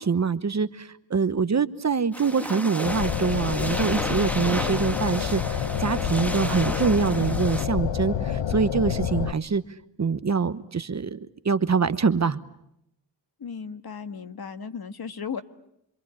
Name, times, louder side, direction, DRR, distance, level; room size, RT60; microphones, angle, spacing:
voice 1, 0.0-9.6 10.0-11.2 11.4-12.4, right 5 dB, 40° right, 12 dB, 1.1 m, -24 dB
sound 1, 2.1-7.7, equal, 5° left, 1.7 m, -33 dB
sound 2, 2.8-9.3, left 8 dB, 75° left, 1.0 m, -28 dB
voice 2, 13.4-15.4, left 6 dB, 55° left, 9 dB, 1.7 m, -35 dB
27.0 x 25.5 x 8.5 m, 0.78 s
wide cardioid pair, 105°, 43 cm